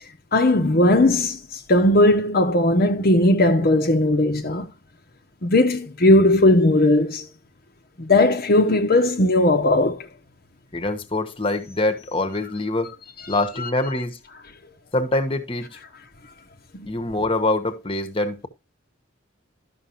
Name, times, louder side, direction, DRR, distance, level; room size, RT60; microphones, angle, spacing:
voice 1, 0.3-4.7 5.4-7.3 8.0-10.1 16.7-16.9, left 1 dB, 50° left, 0.9 m, -18 dB
voice 2, 10.7-12.9 13.3-14.2 14.9-15.8 16.9-18.5, left 2 dB, 25° left, 1.2 m, -24 dB
12.5 x 6.1 x 3.0 m
head